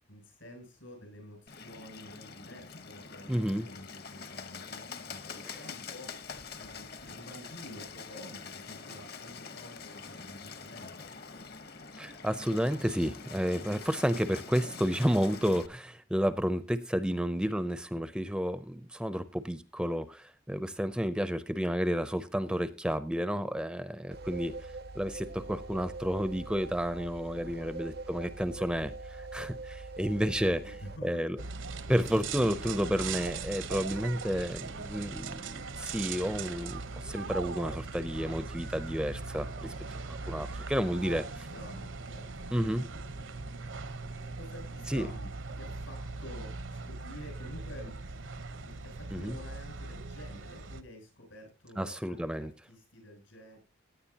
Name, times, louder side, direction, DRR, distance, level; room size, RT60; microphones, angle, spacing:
voice 1, 0.1-6.1 6.5-10.9 27.4-27.5 30.1-31.3 41.1-42.6 44.2-45.3 45.6-47.9 48.6-53.6, left 1 dB, 80° left, 7.9 m, -49 dB
Bird, 1.5-15.7, left 5 dB, 50° left, 1.0 m, -45 dB
voice 2, 3.3-3.7 5.4-5.6 12.0-30.8 31.0-31.4 31.9-39.7 40.1-41.2 42.5-42.9 44.9-45.1 49.1-49.4 51.8-52.5, equal, 5° right, 0.5 m, -31 dB
sound 1, 24.1-31.0, right 3 dB, 50° right, 0.5 m, -43 dB
sound 2, 31.4-50.8, right 4 dB, 80° right, 1.0 m, -40 dB
17.0 x 9.5 x 2.8 m
head